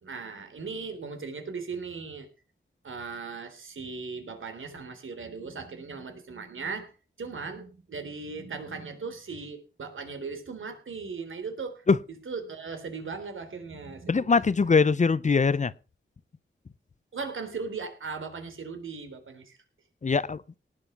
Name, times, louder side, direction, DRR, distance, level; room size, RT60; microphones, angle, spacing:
voice 1, 0.0-2.3 2.8-6.9 7.2-11.8 12.3-14.4 17.1-19.6, right 4 dB, 75° right, 3.6 m, -38 dB
voice 2, 14.1-15.7 20.0-20.6, left 5 dB, 35° left, 0.6 m, -22 dB
18.5 x 7.6 x 5.8 m
wide cardioid pair, 140°, 21 cm